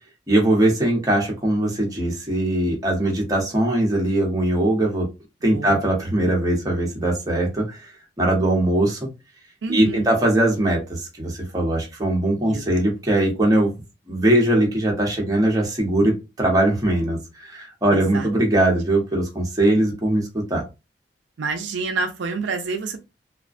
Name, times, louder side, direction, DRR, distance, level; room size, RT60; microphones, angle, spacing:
voice 1, 0.3-5.1 5.4-7.9 8.2-9.1 9.7-13.7 14.1-20.6, right 1 dB, 20° right, 0.8 m, -21 dB
voice 2, 5.5-5.8 9.6-10.1 12.4-12.6 17.9-18.3 21.4-23.0, right 4 dB, 70° right, 0.4 m, -28 dB
2.4 x 2.1 x 2.4 m
head